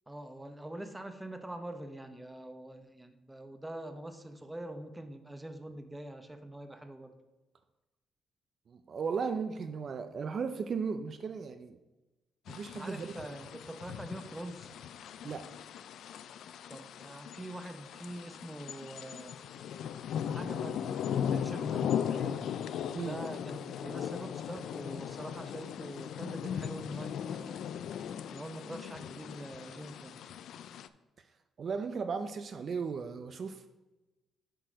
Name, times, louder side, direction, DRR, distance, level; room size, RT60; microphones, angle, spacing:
voice 1, 0.1-7.2 12.8-14.7 16.7-19.4 20.3-22.5 23.0-27.7 28.3-30.2, right 1 dB, 10° right, 8 dB, 0.8 m, -44 dB
voice 2, 8.7-11.8 12.5-13.3 15.2-15.5 22.9-23.2 31.6-33.7, right 5 dB, 50° right, 8 dB, 0.5 m, -36 dB
sound 1, 12.5-30.9, left 8 dB, 75° left, 0.3 m, -38 dB
7.6 x 4.7 x 5.1 m, 1.1 s
cardioid pair, 90°, 0 cm